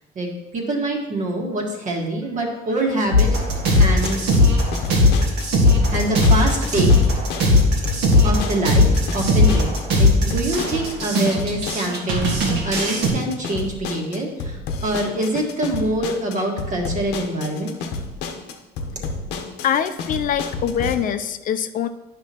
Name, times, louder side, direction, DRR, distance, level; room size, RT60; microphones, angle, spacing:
voice 1, 0.1-4.2 5.7-6.9 8.2-17.7, right 1 dB, 45° right, 1 dB, 1.6 m, -25 dB
sound 1, 3.1-13.1, left 2 dB, 90° right, 1.6 m, -18 dB
sound 2, 3.5-20.9, left 4 dB, 85° left, 0.8 m, -31 dB
voice 2, 19.6-21.9, left 8 dB, 55° left, 10 dB, 0.4 m, -23 dB
9.6 x 5.8 x 2.9 m, 1.0 s
cardioid pair, 110°, 17 cm